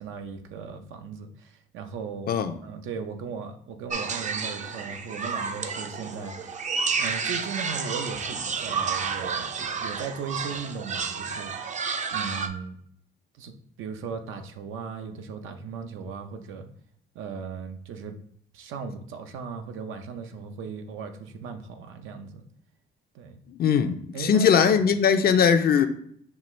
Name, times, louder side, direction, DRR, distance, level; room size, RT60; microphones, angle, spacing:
voice 1, 0.0-2.4 2.6-6.3 7.0-9.5 9.8-11.5 12.1-12.8 13.3-16.7 17.1-18.2 18.5-22.4 23.1-23.4 24.1-24.7, right 5 dB, 85° right, 0.6 m, -37 dB
sound 1, 3.9-12.5, right 5 dB, 40° right, 0.4 m, -31 dB
voice 2, 23.5-25.9, left 7 dB, 50° left, 0.5 m, -20 dB
5.6 x 2.4 x 3.1 m
cardioid pair, 90°, 20 cm